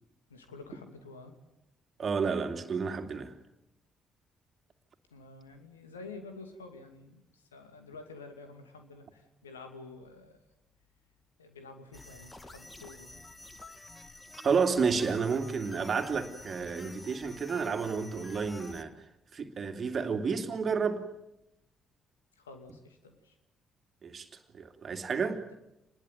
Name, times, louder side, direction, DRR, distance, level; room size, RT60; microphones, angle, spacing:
voice 1, 0.3-1.4 5.1-10.4 11.4-13.2 22.4-23.4, left 3 dB, 85° left, 2.7 m, -49 dB
voice 2, 2.0-3.3 14.4-18.9 19.3-21.0 24.0-24.3 24.5-25.4, right 5 dB, 45° right, 2.8 m, -30 dB
sound 1, 11.9-18.8, left 2 dB, 20° left, 2.2 m, -49 dB
27.5 x 21.0 x 9.3 m
figure-of-eight pair, 45°, 0 cm